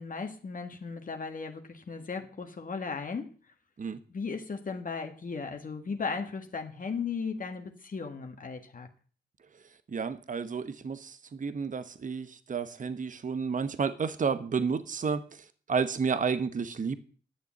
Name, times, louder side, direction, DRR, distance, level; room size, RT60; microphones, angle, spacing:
voice 1, 0.0-3.3 4.1-8.9, left 5 dB, 45° left, 1.6 m, -36 dB
voice 2, 9.9-15.2 15.7-17.0, right 5 dB, 45° right, 1.0 m, -31 dB
11.0 x 6.9 x 7.5 m
cardioid pair, 70°, 19 cm